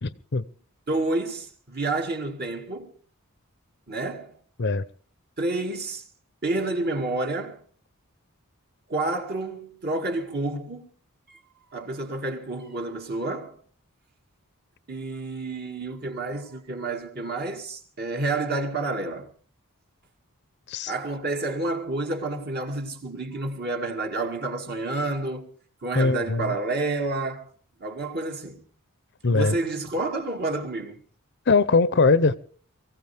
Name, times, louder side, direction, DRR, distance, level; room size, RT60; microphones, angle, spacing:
voice 1, 0.0-0.4 4.6-4.8 20.7-20.9 26.0-26.5 29.2-29.5 31.5-32.4, left 4 dB, 50° left, 0.7 m, -21 dB
voice 2, 0.9-2.9 3.9-4.4 5.4-6.1 6.4-7.6 8.9-10.9 11.7-13.6 14.9-19.3 20.9-25.5 25.8-27.5 27.8-28.6 29.2-31.0, right 2 dB, 45° right, 2.2 m, -29 dB
23.5 x 15.5 x 3.4 m
head